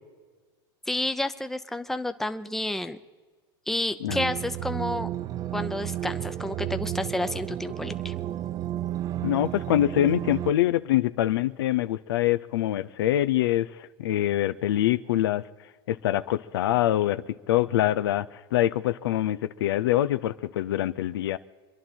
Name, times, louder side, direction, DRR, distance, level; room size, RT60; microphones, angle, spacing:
voice 1, 0.9-3.0 3.7-5.1 5.5-8.1, left 1 dB, 5° left, 0.7 m, -30 dB
sound 1, 4.1-10.5, right 12 dB, 30° right, 0.5 m, -32 dB
voice 2, 9.2-15.5 15.9-21.4, left 13 dB, 85° left, 0.6 m, -25 dB
26.0 x 11.0 x 4.4 m
supercardioid pair, 125°, 12 cm